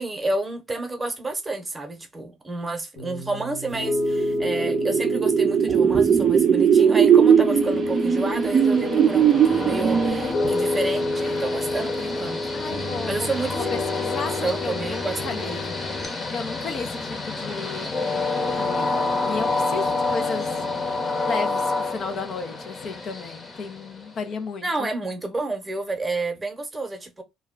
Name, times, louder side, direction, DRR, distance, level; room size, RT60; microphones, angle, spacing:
voice 1, 0.0-12.5 13.0-13.8 14.4-15.6 24.6-27.2, right 2 dB, 20° right, 0.8 m, -30 dB
Piano, 3.0-16.0, left 1 dB, 90° left, 1.1 m, -29 dB
sound 1, 4.0-10.5, right 8 dB, 50° right, 0.3 m, -19 dB
Train, 7.6-24.3, left 3 dB, 30° left, 0.9 m, -29 dB
voice 2, 12.5-13.3 13.7-15.7 16.3-20.6 21.3-24.9, left 4 dB, 55° left, 0.5 m, -34 dB
2.2 x 2.2 x 3.5 m
supercardioid pair, 70°, 0 cm